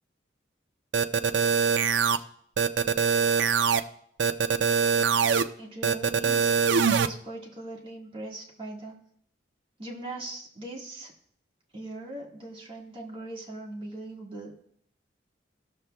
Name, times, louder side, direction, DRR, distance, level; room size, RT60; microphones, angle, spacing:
sound 1, 0.9-2.2 2.6-3.8 4.2-5.4 5.8-7.1, right 6 dB, 75° right, 0.4 m, -23 dB
voice 1, 5.6-6.5 6.9-9.0 9.8-11.1 11.7-14.5, right 2 dB, 30° right, -2 dB, 1.6 m, -40 dB
18.5 x 6.7 x 2.2 m, 0.66 s
head